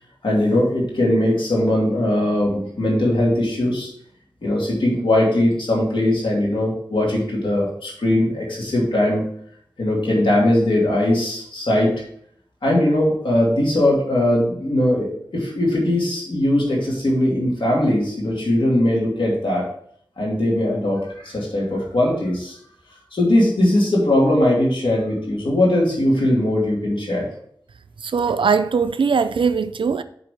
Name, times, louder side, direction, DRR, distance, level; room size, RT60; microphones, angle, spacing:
voice 1, 0.2-3.9 4.4-9.2 9.8-12.0 12.6-19.7 20.2-22.5 23.1-27.3, left 1 dB, 85° left, 2.6 m, -20 dB
voice 2, 28.0-30.0, right 5 dB, 85° right, 0.4 m, -20 dB
7.5 x 3.9 x 5.0 m
wide cardioid pair, 65°, 8 cm